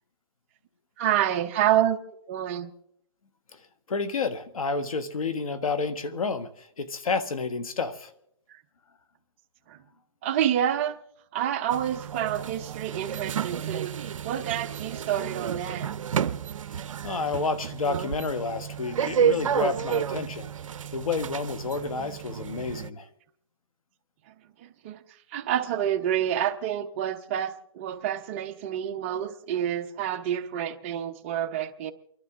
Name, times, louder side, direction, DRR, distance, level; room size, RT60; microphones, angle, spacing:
voice 1, 1.0-2.0 2.3-2.7 9.7-9.8 10.2-11.0 11.3-13.9 14.2-15.9 24.6-25.0 25.3-31.9, right 10 dB, 25° right, 0.6 m, -28 dB
voice 2, 3.9-8.1 17.0-20.5 20.9-23.1, left 4 dB, 85° left, 1.3 m, -30 dB
sound 1, 11.7-22.9, right 8 dB, 70° right, 0.6 m, -31 dB
29.0 x 11.5 x 3.6 m
hypercardioid pair, 160°, 17 cm